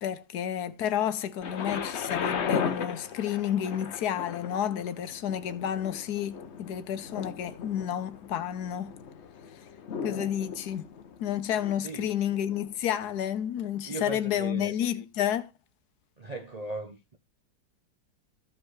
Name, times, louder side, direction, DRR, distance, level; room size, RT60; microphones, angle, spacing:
voice 1, 0.0-8.9 10.0-10.9 11.2-15.5, left 10 dB, 70° left, 1.2 m, -30 dB
Thunder, 1.4-13.3 14.0-14.1, left 6 dB, 50° left, 0.9 m, -37 dB
voice 2, 13.8-14.7 16.2-17.2, right 2 dB, 45° right, 0.5 m, -38 dB
14.0 x 5.0 x 3.2 m
omnidirectional pair, 1.8 m